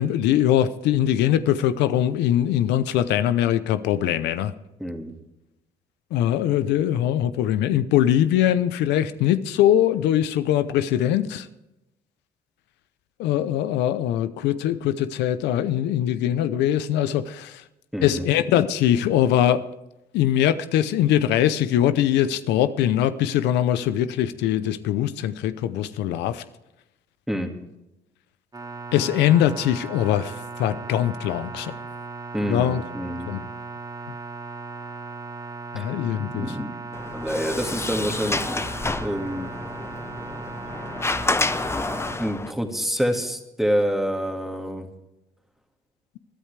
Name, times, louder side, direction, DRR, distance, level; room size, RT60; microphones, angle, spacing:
voice 1, 0.0-4.5 6.1-11.5 13.2-17.6 18.0-19.6 20.1-26.4 28.9-30.3 30.6-31.8 32.5-32.8 33.3-33.4 35.7-36.5, left 11 dB, 90° left, 13 dB, 0.7 m, -22 dB
voice 2, 4.8-5.1 17.9-18.3 27.3-27.5 32.3-33.3 35.8-35.9 36.2-36.7 37.1-38.7 39.0-39.5 42.2-44.9, equal, ahead, 3 dB, 2.0 m, -27 dB
sound 1, 28.5-42.2, right 4 dB, 25° right, 2.3 m, -37 dB
Sliding door, 36.9-42.5, left 3 dB, 15° left, 0.7 m, -29 dB
20.5 x 11.5 x 3.3 m, 0.93 s
cardioid pair, 95°, 17 cm